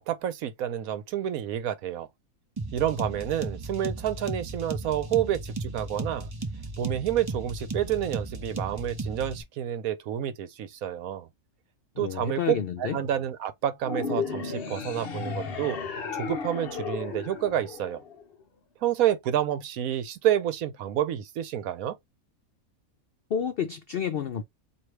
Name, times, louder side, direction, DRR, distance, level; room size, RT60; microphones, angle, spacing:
voice 1, 0.0-2.1 2.7-6.3 6.8-11.3 12.0-15.8 16.1-18.0 18.8-22.0, right 11 dB, 75° right, 1.1 m, -29 dB
sound 1, 2.6-9.4, right 2 dB, 30° right, 0.4 m, -35 dB
voice 2, 12.0-13.0 23.3-24.4, left 8 dB, 80° left, 0.5 m, -30 dB
sound 2, 13.8-18.3, left 5 dB, 50° left, 0.8 m, -34 dB
4.7 x 2.8 x 3.1 m
omnidirectional pair, 1.6 m